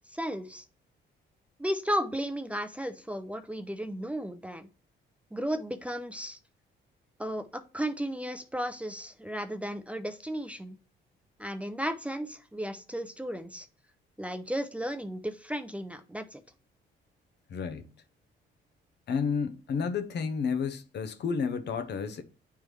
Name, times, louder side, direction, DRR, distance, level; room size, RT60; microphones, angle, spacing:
voice 1, 0.1-0.6 1.6-4.7 5.3-6.4 7.2-10.8 11.4-13.7 14.2-16.4, equal, 5° right, 0.6 m, -34 dB
voice 2, 17.5-17.9 19.1-22.2, left 6 dB, 60° left, 0.8 m, -31 dB
9.1 x 3.5 x 3.2 m
cardioid pair, 90°, 20 cm